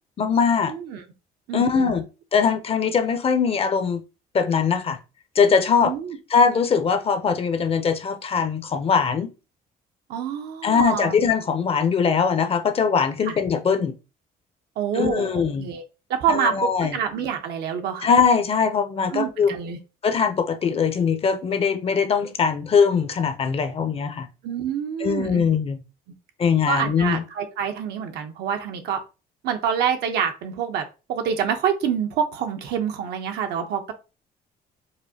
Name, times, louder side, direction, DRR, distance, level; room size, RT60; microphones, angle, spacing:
voice 1, 0.2-0.7 1.5-2.0 2.3-4.0 4.3-5.0 5.4-5.9 6.3-9.3 10.6-13.9 15.0-15.7 16.3-16.9 18.0-19.5 20.0-24.3 25.0-25.8 26.4-27.2, left 6 dB, 35° left, 0.6 m, -21 dB
voice 2, 0.7-1.0 1.5-2.0 5.7-6.2 10.1-11.2 13.2-13.4 14.8-15.8 16.1-18.1 19.1-19.8 24.4-25.4 26.7-29.0 29.4-33.9, right 8 dB, 75° right, 0.8 m, -27 dB
4.9 x 2.1 x 2.7 m
cardioid pair, 110°, 17 cm